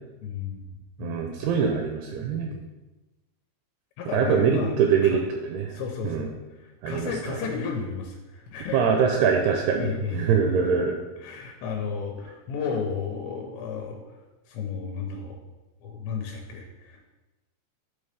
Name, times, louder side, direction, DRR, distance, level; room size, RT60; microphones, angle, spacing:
voice 1, 0.2-0.7 1.0-1.4 2.5-2.6 4.0-4.7 5.0-5.2 5.7-6.3 6.6-9.1 9.8-10.3 10.6-10.7 11.2-14.0 14.5-15.4 15.8-17.0, left 5 dB, 85° left, 1 dB, 2.9 m, -33 dB
voice 2, 1.0-2.5 4.1-5.7 6.0-6.3 6.8-7.4 8.7-11.0, right 6 dB, 80° right, 2 dB, 2.4 m, -23 dB
11.0 x 3.8 x 3.4 m, 1.1 s
omnidirectional pair, 5.0 m